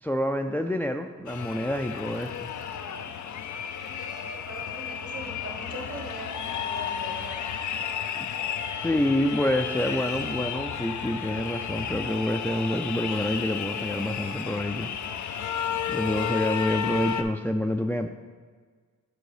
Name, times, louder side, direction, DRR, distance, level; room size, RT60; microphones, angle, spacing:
voice 1, 0.0-2.5 8.2-8.3 8.5-14.9 15.9-18.1, left 1 dB, 5° left, 5 dB, 0.4 m, -27 dB
sound 1, 1.3-17.2, left 8 dB, 80° left, 0.5 m, -33 dB
voice 2, 4.2-7.4, right 2 dB, 55° right, 1 dB, 1.5 m, -41 dB
7.9 x 3.8 x 4.8 m, 1.5 s
cardioid pair, 50°, 29 cm